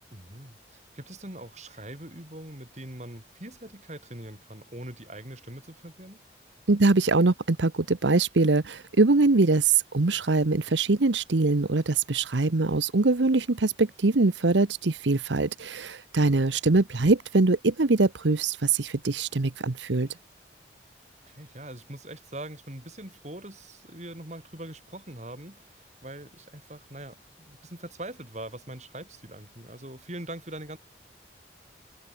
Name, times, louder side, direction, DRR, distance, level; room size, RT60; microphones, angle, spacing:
voice 1, 0.1-6.2 21.2-30.8, right 1 dB, 40° right, 5.2 m, -42 dB
voice 2, 6.7-20.1, right 3 dB, 85° right, 1.0 m, -23 dB
head